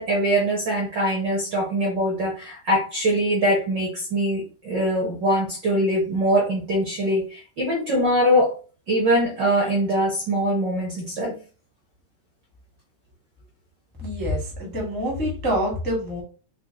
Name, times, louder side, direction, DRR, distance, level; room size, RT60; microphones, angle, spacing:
voice 1, 0.0-8.5 8.9-11.4, equal, 70° right, -2 dB, 1.0 m, -22 dB
voice 2, 14.0-16.2, equal, 10° left, -3 dB, 0.4 m, -26 dB
5.6 x 2.2 x 3.7 m, 0.37 s
omnidirectional pair, 3.6 m